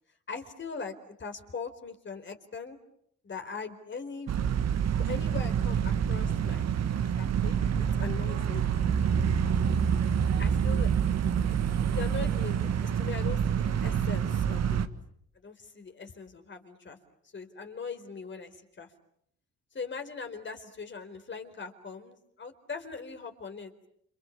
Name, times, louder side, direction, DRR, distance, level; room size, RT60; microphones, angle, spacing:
voice 1, 0.3-2.8 3.2-4.4 5.0-6.6 7.1-8.7 10.4-11.2 11.5-14.8 15.4-17.0 17.3-18.9 19.7-23.7, left 5 dB, 40° left, 7 dB, 4.3 m, -40 dB
sound 1, 4.3-14.9, right 8 dB, 60° right, 1.8 m, -27 dB
30.0 x 27.5 x 7.3 m, 0.71 s
cardioid pair, 90°, 30 cm